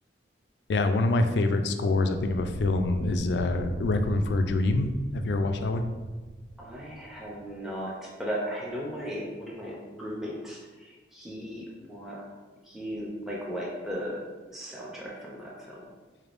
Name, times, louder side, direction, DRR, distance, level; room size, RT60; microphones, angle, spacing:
voice 1, 0.7-5.9, left 2 dB, 70° left, 7 dB, 0.3 m, -26 dB
sound 1, 2.1-7.3, right 2 dB, 80° right, 0.4 m, -37 dB
voice 2, 6.6-12.2 12.6-14.2 14.5-15.9, equal, ahead, -5 dB, 0.5 m, -36 dB
4.3 x 3.4 x 2.4 m, 1.3 s
head